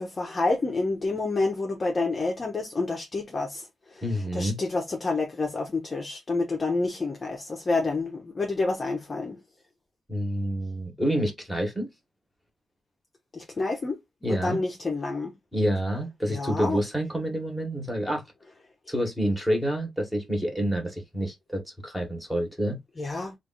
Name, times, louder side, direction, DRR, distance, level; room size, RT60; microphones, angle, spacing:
voice 1, 0.0-3.7 3.9-4.0 4.3-9.4 13.3-14.0 14.3-15.3 16.3-16.8 23.0-23.3, left 3 dB, 25° left, 0.8 m, -28 dB
voice 2, 4.0-4.6 10.1-11.9 14.2-14.6 15.5-18.2 18.9-22.8, equal, ahead, 1.4 m, -28 dB
3.3 x 2.5 x 3.8 m
wide cardioid pair, 155°, 0 cm